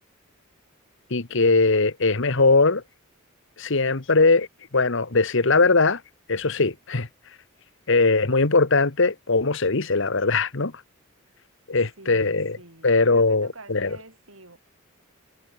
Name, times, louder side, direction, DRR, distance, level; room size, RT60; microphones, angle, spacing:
voice 1, 1.1-2.8 3.6-4.5 4.7-6.0 6.3-7.1 7.9-10.7 11.7-12.6 12.8-14.0, left 3 dB, 60° left, 1.4 m, -20 dB
voice 2, 12.0-14.6, right 2 dB, 70° right, 6.2 m, -47 dB
head